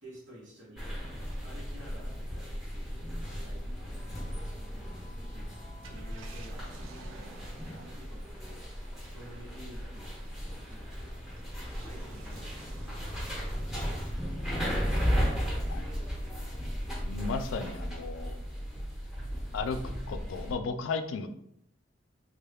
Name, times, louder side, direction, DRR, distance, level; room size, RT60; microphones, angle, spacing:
voice 1, 0.0-0.9 1.4-4.6 5.3-5.5 5.9-10.3 10.6-11.2 11.7-14.0 15.4-16.0, equal, 65° right, -6 dB, 1.2 m, -52 dB
sound 1, 0.8-20.5, equal, ahead, 1.0 m, -35 dB
Car, 5.8-16.5 17.0-17.1 19.1-19.4, right 3 dB, 90° right, 0.5 m, -54 dB
voice 2, 17.0-18.3 19.5-19.8 20.1-21.3, left 4 dB, 85° left, 9 dB, 0.3 m, -34 dB
3.5 x 2.3 x 3.4 m, 0.73 s
head